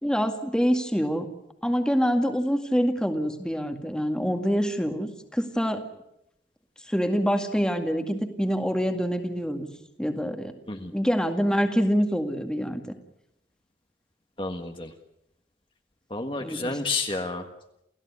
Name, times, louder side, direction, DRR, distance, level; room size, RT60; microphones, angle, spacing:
voice 1, 0.0-1.3 1.6-5.9 6.9-9.7 10.0-10.5 10.9-12.8 16.4-16.8, equal, 5° left, 5 dB, 2.0 m, -25 dB
voice 2, 14.4-14.9 16.1-17.5, left 3 dB, 30° left, 4 dB, 1.6 m, -30 dB
29.0 x 16.5 x 9.7 m, 0.81 s
head